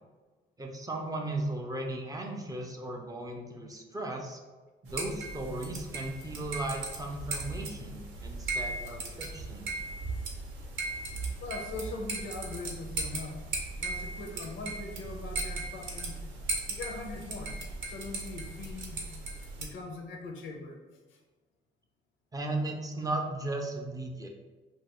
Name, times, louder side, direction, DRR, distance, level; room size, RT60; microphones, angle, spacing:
voice 1, 0.6-4.4 4.9-9.7 22.3-24.3, right 2 dB, 20° right, 1 dB, 0.4 m, -36 dB
sound 1, 4.9-19.7, right 3 dB, 80° right, 0.6 m, -37 dB
voice 2, 11.4-13.4 13.8-16.2 16.7-17.6 17.8-19.1 19.6-20.8 21.1-21.2, left 3 dB, 75° left, 3 dB, 0.5 m, -41 dB
2.5 x 2.3 x 2.9 m, 1.3 s
cardioid pair, 90°, 20 cm